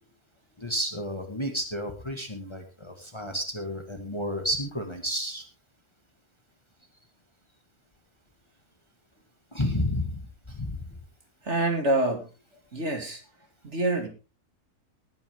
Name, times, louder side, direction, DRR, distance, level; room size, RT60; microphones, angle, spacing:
voice 1, 0.6-5.4 9.5-10.9, equal, 20° left, 4 dB, 1.8 m, -31 dB
voice 2, 11.4-12.3 12.7-13.2 13.6-14.1, right 2 dB, 50° right, 4 dB, 2.7 m, -26 dB
19.0 x 8.8 x 3.6 m, 0.31 s
omnidirectional pair, 1.5 m